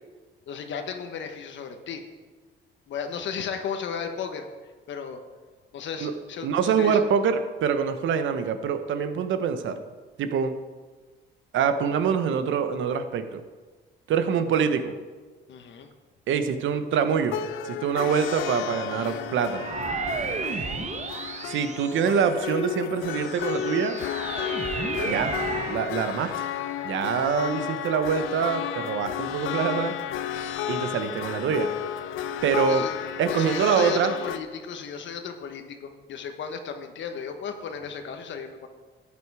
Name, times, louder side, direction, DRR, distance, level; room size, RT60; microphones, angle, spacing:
voice 1, 0.5-2.0 2.9-4.5 4.9-5.2 5.7-7.0 15.5-15.9 19.0-19.2 32.7-32.9 33.3-38.7, left 6 dB, 70° left, 6 dB, 1.1 m, -35 dB
voice 2, 6.4-9.8 10.2-10.5 11.5-13.4 14.1-14.9 16.3-17.4 17.6-19.6 21.4-24.0 25.0-25.3 25.7-26.5 26.8-30.0 30.7-31.7 32.4-32.8 33.2-34.1, right 7 dB, 75° right, 9 dB, 1.0 m, -25 dB
sound 1, 17.2-34.4, left 9 dB, 85° left, 0.7 m, -32 dB
sound 2, 19.5-22.4 23.0-25.9, right 4 dB, 35° right, 1.1 m, -32 dB
12.5 x 8.6 x 4.8 m, 1.4 s
cardioid pair, 90°, 20 cm